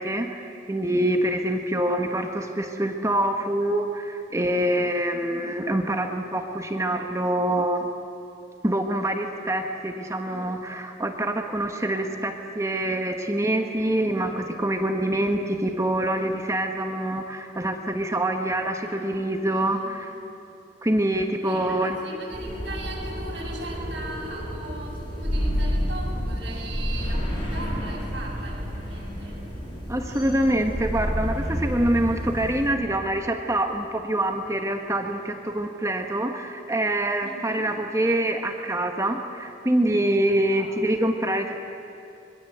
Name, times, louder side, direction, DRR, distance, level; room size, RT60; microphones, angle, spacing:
voice 1, 0.0-7.9 8.6-20.1 20.8-22.0 29.9-41.6, right 1 dB, 15° right, 4 dB, 1.4 m, -25 dB
voice 2, 18.8-20.3 21.4-29.5 37.2-37.7 40.2-40.8, right 2 dB, 65° right, -3 dB, 7.7 m, -39 dB
sound 1, 22.3-32.7, equal, 30° left, 6.6 m, -30 dB
25.5 x 22.5 x 8.1 m, 2.9 s
head